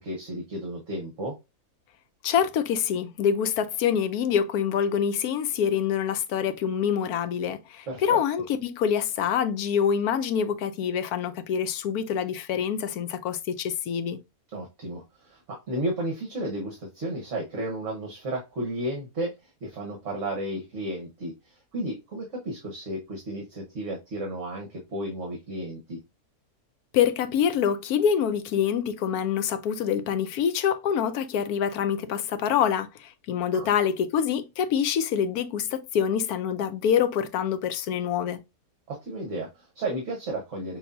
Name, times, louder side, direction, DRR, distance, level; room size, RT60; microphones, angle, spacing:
voice 1, 0.0-1.4 7.9-8.2 14.5-19.3 19.6-26.0 33.5-33.7 38.9-40.8, right 1 dB, 55° right, 1.5 m, -33 dB
voice 2, 2.2-14.2 26.9-38.4, left 8 dB, 90° left, 1.1 m, -26 dB
6.3 x 2.6 x 2.6 m
omnidirectional pair, 1.6 m